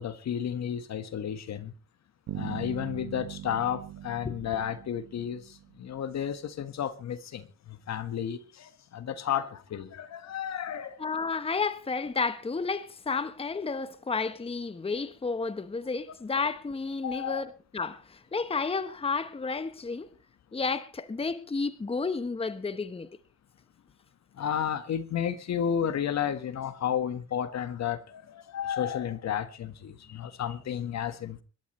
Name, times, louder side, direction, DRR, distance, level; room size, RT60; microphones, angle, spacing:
voice 1, 0.0-1.7 2.3-11.0 17.0-17.4 24.3-31.4, left 9 dB, 60° left, 1.6 m, -32 dB
sound 1, 2.3-6.0, right 13 dB, 80° right, 1.3 m, -41 dB
voice 2, 11.0-20.1 20.5-23.1, left 4 dB, 20° left, 1.1 m, -31 dB
25.5 x 12.5 x 3.2 m
cardioid pair, 90°, 30 cm